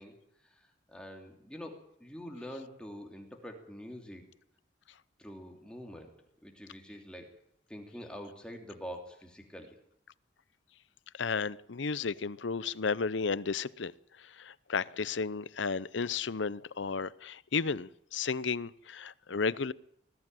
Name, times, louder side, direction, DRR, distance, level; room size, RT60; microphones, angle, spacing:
voice 1, 0.0-4.3 5.2-7.4 7.7-9.8, equal, 5° left, 3.0 m, -46 dB
voice 2, 11.1-13.9 14.2-19.7, left 5 dB, 80° left, 0.7 m, -33 dB
20.5 x 14.5 x 9.1 m
head